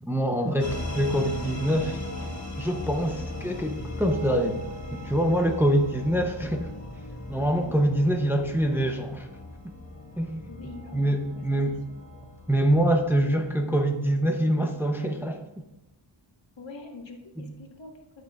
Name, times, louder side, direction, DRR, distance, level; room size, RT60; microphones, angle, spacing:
voice 1, 0.0-2.0 2.6-4.6 4.9-6.7 7.3-9.3 10.2-10.5 10.9-11.8 12.5-15.4 17.4-17.5, right 1 dB, 5° right, 4 dB, 0.6 m, -25 dB
sound 1, 0.6-13.6, left 2 dB, 35° left, 1.3 m, -38 dB
voice 2, 7.4-7.7 10.5-11.6 11.9-12.0 13.6-13.7 16.6-18.2, left 3 dB, 60° left, 2 dB, 1.4 m, -45 dB
13.0 x 6.5 x 2.3 m, 0.97 s
wide cardioid pair, 95°, 49 cm